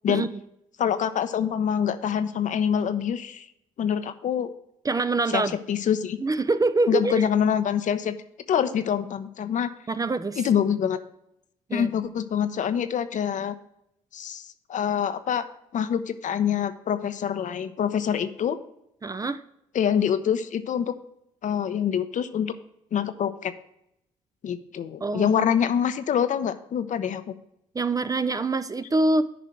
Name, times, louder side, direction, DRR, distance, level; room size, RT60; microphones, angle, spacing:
voice 1, 0.8-3.5 3.8-4.5 5.3-5.4 5.7-6.2 6.9-8.1 8.5-9.7 10.4-11.0 11.7-13.5 14.1-14.4 14.7-15.5 15.7-18.6 19.7-20.9 21.4-22.5 22.9-23.5 24.4-27.3, left 8 dB, 50° left, 11 dB, 0.7 m, -25 dB
voice 2, 4.8-5.6 6.2-7.2 9.9-10.4 11.7-11.9 19.0-19.4 25.0-25.5 27.7-29.2, right 3 dB, 20° right, 12 dB, 0.5 m, -25 dB
10.0 x 5.1 x 4.3 m, 0.80 s
figure-of-eight pair, 45°, 17 cm